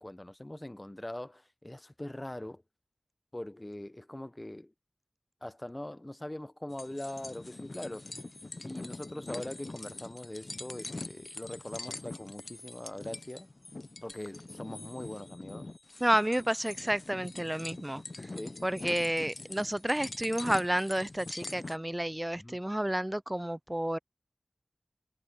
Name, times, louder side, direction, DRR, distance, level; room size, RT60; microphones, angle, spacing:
voice 1, 0.0-2.6 3.3-4.7 5.4-8.2 8.6-13.5 14.0-15.7 18.3-18.6 22.4-22.6, left 1 dB, 25° left, 0.9 m, -42 dB
sound 1, 6.7-21.8, left 2 dB, 55° left, 0.6 m, -44 dB
voice 2, 16.0-18.0 18.6-24.0, right 1 dB, 15° right, 0.4 m, -30 dB
wide cardioid pair, 40°, 0 cm